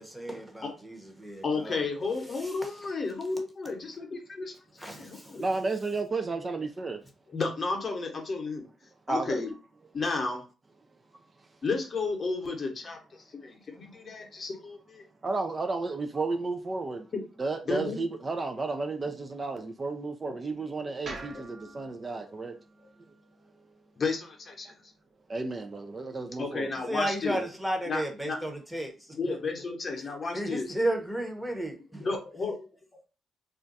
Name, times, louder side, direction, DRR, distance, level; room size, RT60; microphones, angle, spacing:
voice 1, 0.0-2.8 4.8-5.9 26.7-29.4 29.9-32.1, right 1 dB, 5° right, 0.8 m, -34 dB
voice 2, 1.4-5.5 7.3-8.6 9.1-9.5 9.9-10.4 11.6-15.0 17.7-18.0 20.3-20.4 21.3-21.4 22.8-22.9 24.0-24.7 26.4-27.4 27.9-28.4 29.1-30.7 32.0-32.7, left 3 dB, 40° left, 0.8 m, -33 dB
voice 3, 5.4-7.0 9.1-9.4 15.2-17.1 17.4-22.6 24.7-24.8 25.3-26.7, right 3 dB, 30° right, 0.4 m, -32 dB
sound 1, 21.0-25.2, right 2 dB, 50° right, 1.1 m, -48 dB
2.4 x 2.2 x 3.9 m
cardioid pair, 90°, 0 cm